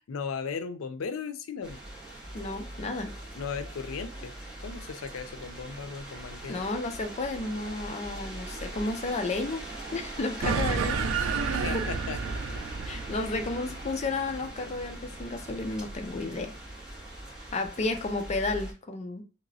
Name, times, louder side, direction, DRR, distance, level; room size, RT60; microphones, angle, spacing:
voice 1, 0.1-1.8 3.1-6.6 11.5-12.4 13.2-13.3, left 5 dB, 90° left, 0.4 m, -37 dB
sound 1, 1.6-18.7, right 1 dB, 5° right, 1.7 m, -41 dB
voice 2, 2.3-3.1 6.5-9.7 9.9-11.1 11.5-11.8 12.9-16.5 17.5-19.2, left 3 dB, 35° left, 0.4 m, -32 dB
sound 2, 10.4-15.2, right 5 dB, 75° right, 0.4 m, -31 dB
2.9 x 2.9 x 2.6 m
head